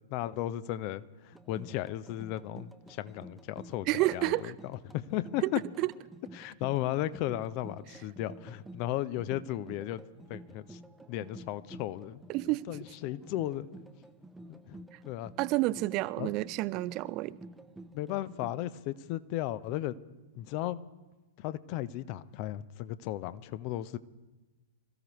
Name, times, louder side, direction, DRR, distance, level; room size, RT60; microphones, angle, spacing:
voice 1, 0.0-4.5 4.9-5.6 6.3-10.0 10.3-10.8 11.1-12.2 12.7-13.7 14.5-14.8 15.1-15.3 16.2-16.3 17.9-20.0 20.3-20.8 21.4-24.0, left 14 dB, 40° left, 0.7 m, -35 dB
sound 1, 1.3-18.5, right 2 dB, 5° right, 0.8 m, -51 dB
voice 2, 3.9-4.5 5.4-5.5 5.8-5.9 12.3-12.7 15.4-17.4, right 19 dB, 35° right, 0.4 m, -29 dB
26.5 x 14.5 x 3.1 m
figure-of-eight pair, 100°, 0 cm